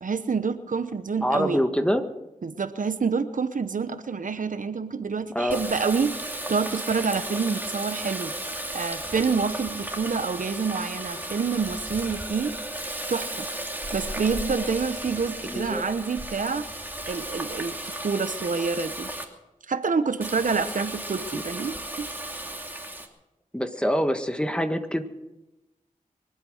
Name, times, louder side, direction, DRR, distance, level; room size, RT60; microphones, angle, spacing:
voice 1, 0.0-1.6 2.4-8.3 8.7-12.6 13.1-13.5 13.9-16.7 17.1-19.1 19.7-22.1, right 5 dB, 70° right, 11 dB, 0.9 m, -27 dB
voice 2, 1.2-2.0 5.3-5.6 15.4-15.8 21.3-21.4 23.5-25.0, equal, 5° left, 7 dB, 1.7 m, -25 dB
Water tap faucet, 5.5-19.2 20.2-23.1, right 1 dB, 15° right, 2.7 m, -35 dB
23.5 x 9.0 x 6.5 m, 0.99 s
cardioid pair, 45°, 14 cm